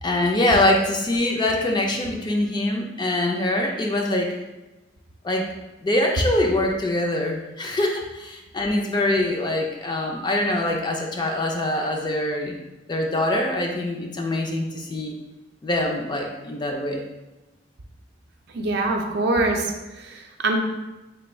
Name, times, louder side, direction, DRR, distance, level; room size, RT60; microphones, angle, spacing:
voice 1, 0.0-4.3 5.2-5.5 5.8-12.6 12.9-15.2 15.6-17.0, left 1 dB, 25° left, 1 dB, 0.4 m, -24 dB
voice 2, 18.5-20.6, right 2 dB, 60° right, 2 dB, 0.5 m, -24 dB
3.3 x 2.3 x 4.2 m, 1.1 s
head